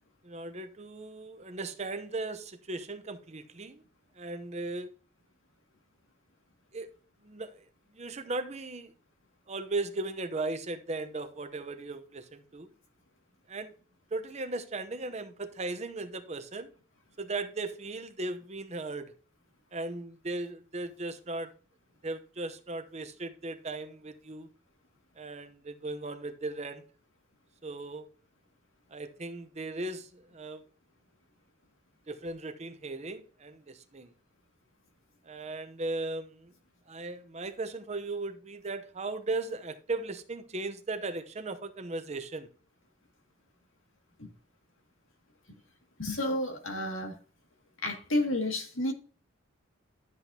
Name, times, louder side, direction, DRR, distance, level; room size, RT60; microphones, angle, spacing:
voice 1, 0.2-3.8 4.2-4.9 6.7-6.9 7.2-7.6 7.9-8.9 9.5-12.7 13.5-13.7 14.1-16.7 17.2-19.1 19.7-21.5 22.0-24.5 25.2-26.8 27.6-28.1 28.9-30.7 32.1-34.1 35.2-36.5 36.9-42.5, right 2 dB, 30° right, 0.8 m, -37 dB
voice 2, 46.0-47.2 47.8-48.9, left 1 dB, 70° left, 2.2 m, -31 dB
12.0 x 8.0 x 2.8 m
head